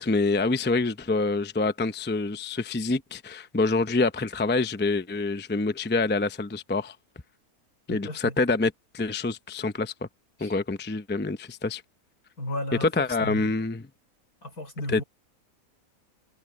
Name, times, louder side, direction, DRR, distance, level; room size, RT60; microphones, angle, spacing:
voice 1, 0.0-6.9 7.9-10.1 10.4-11.8 12.8-13.8 14.9-15.0, left 3 dB, 10° left, 0.5 m, -26 dB
voice 2, 7.9-8.4 10.4-10.6 12.4-13.5 14.4-15.0, left 1 dB, 80° left, 6.1 m, -35 dB
omnidirectional pair, 1.6 m